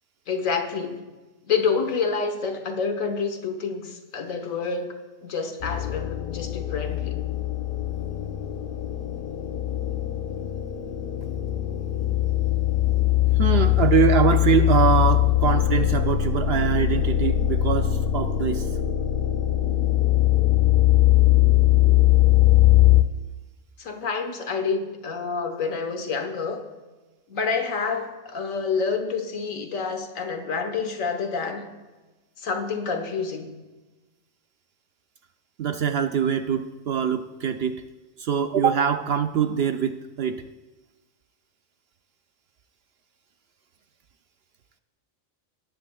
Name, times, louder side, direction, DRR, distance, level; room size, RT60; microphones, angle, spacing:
voice 1, 0.3-1.0 1.5-4.9 5.2-7.2 23.8-26.6 27.3-31.7 32.4-33.6, left 5 dB, 80° left, 5 dB, 1.5 m, -28 dB
sound 1, 5.6-23.0, left 14 dB, 55° left, 0.7 m, -21 dB
voice 2, 13.3-18.7 35.6-37.8 38.2-40.4, right 7 dB, 60° right, 8 dB, 0.7 m, -23 dB
19.0 x 10.5 x 2.3 m, 1.2 s
omnidirectional pair, 1.4 m